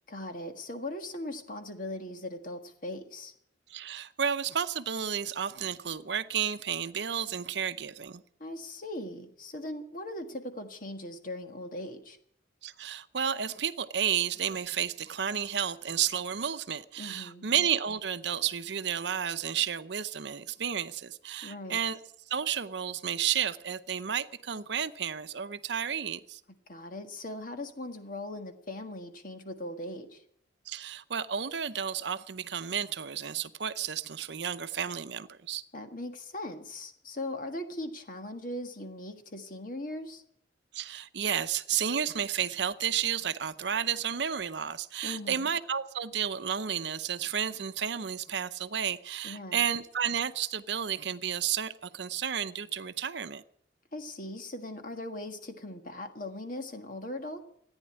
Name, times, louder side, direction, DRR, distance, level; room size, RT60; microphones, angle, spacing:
voice 1, 0.1-3.3 8.4-12.2 17.0-17.5 21.4-21.8 26.7-30.2 35.7-40.2 45.0-45.5 49.2-49.6 53.9-57.4, left 1 dB, 45° left, 1.6 m, -39 dB
voice 2, 3.7-8.2 12.6-22.0 22.3-26.4 30.7-35.6 40.7-53.4, right 8 dB, 65° right, 0.7 m, -32 dB
14.5 x 9.8 x 9.6 m
head